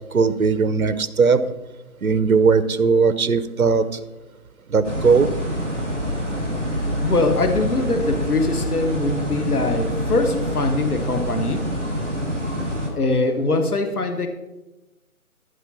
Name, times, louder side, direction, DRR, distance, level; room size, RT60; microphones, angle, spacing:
voice 1, 0.1-1.4 2.0-4.0 4.7-5.3, right 5 dB, 70° right, 13 dB, 1.0 m, -18 dB
sound 1, 4.8-12.9, equal, 5° right, 0.9 m, -26 dB
voice 2, 7.0-11.6 12.9-14.3, left 2 dB, 80° left, 6 dB, 1.6 m, -22 dB
15.0 x 5.0 x 5.9 m, 1.0 s
figure-of-eight pair, 165°, 45 cm